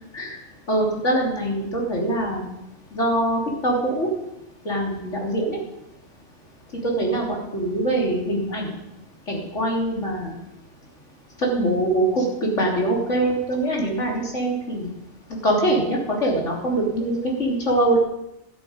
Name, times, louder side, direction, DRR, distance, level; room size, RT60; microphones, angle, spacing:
voice 1, 0.7-2.4 2.9-4.1 4.7-5.6 6.8-8.7 9.3-10.3 11.4-14.9 15.4-18.0, right 1 dB, 60° left, -1 dB, 3.6 m, -23 dB
12.5 x 12.5 x 5.1 m, 0.88 s
omnidirectional pair, 1.4 m